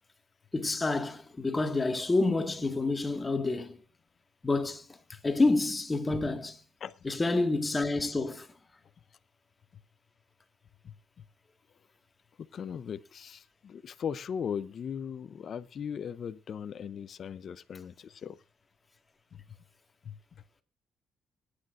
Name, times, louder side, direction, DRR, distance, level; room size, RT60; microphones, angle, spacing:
voice 1, 0.5-3.8 4.4-4.9 5.2-6.6 7.0-8.5, left 2 dB, 20° left, 2.0 m, -28 dB
voice 2, 12.5-18.4 19.3-19.4 20.0-20.2, left 7 dB, 55° left, 0.7 m, -38 dB
22.5 x 9.8 x 2.6 m
cardioid pair, 90°, 0 cm